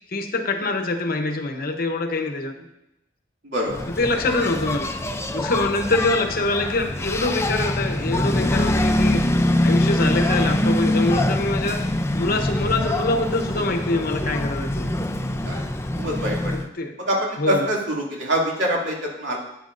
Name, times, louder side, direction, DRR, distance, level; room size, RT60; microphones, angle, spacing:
voice 1, 0.1-2.5 4.0-4.9 5.3-9.2 9.6-11.8 12.1-14.9 16.5-16.9 17.4-17.7, left 2 dB, 55° left, 6 dB, 0.9 m, -24 dB
voice 2, 3.4-3.9 15.4-15.6 16.0-16.7 17.1-19.4, equal, 75° right, -3 dB, 2.5 m, -25 dB
Engine, 3.7-16.7, left 1 dB, 15° left, 0.5 m, -24 dB
11.5 x 9.3 x 2.6 m, 0.86 s
head